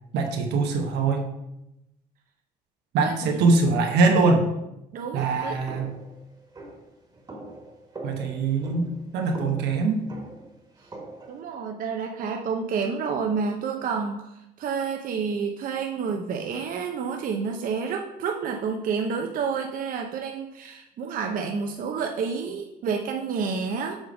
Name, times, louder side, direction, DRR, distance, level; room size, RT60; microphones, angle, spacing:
voice 1, 0.1-1.3 2.9-4.5 5.1-6.0 8.0-10.0, right 3 dB, 80° right, 4 dB, 1.0 m, -23 dB
voice 2, 3.0-3.4 4.9-5.6 11.3-14.3 14.6-24.0, right 5 dB, 55° right, 3 dB, 0.7 m, -29 dB
sound 1, 5.7-11.4, right 2 dB, 25° right, 1.5 m, -42 dB
7.2 x 3.4 x 5.0 m, 0.89 s
cardioid pair, 110°, 17 cm